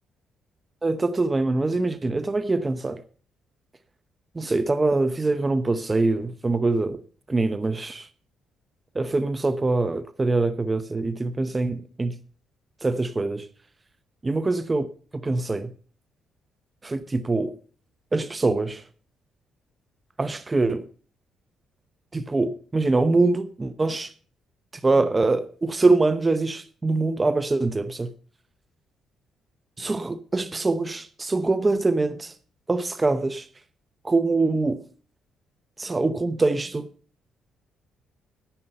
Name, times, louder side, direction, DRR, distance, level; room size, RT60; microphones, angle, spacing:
voice 1, 0.8-3.0 4.4-7.0 7.3-8.1 8.9-12.1 12.8-13.4 14.2-14.9 15.2-15.7 16.8-17.5 18.1-18.8 20.2-20.8 22.1-24.1 24.8-28.1 29.8-32.3 32.7-33.5 34.0-34.8 35.8-36.9, right 3 dB, 20° right, 0.8 m, -24 dB
10.0 x 9.2 x 5.5 m
cardioid pair, 90°, 0 cm